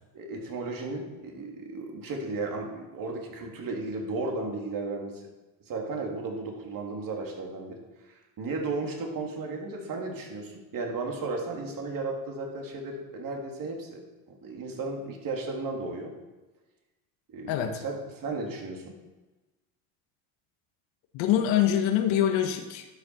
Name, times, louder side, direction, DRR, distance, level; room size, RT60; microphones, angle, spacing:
voice 1, 0.1-5.2 5.7-7.8 8.1-16.1 17.3-19.0, right 3 dB, 45° right, 1 dB, 3.0 m, -34 dB
voice 2, 17.5-17.8 21.1-22.9, left 10 dB, 70° left, 5 dB, 1.5 m, -24 dB
11.5 x 7.5 x 6.1 m, 1.1 s
supercardioid pair, 105°, 47 cm